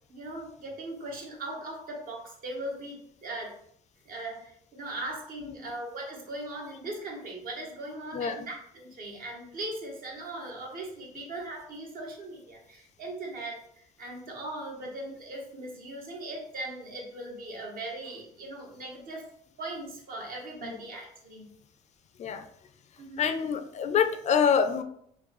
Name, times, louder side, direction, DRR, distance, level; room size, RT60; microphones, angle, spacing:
voice 1, 0.1-3.5 4.0-13.6 14.0-19.3 19.6-21.5 23.0-23.3, right 1 dB, 60° right, -1 dB, 1.2 m, -39 dB
voice 2, 8.1-8.5 11.2-11.3 20.6-20.8 22.2-22.5 23.2-24.8, left 7 dB, 45° left, 9 dB, 0.4 m, -26 dB
4.4 x 2.2 x 3.0 m, 0.67 s
cardioid pair, 110°, 17 cm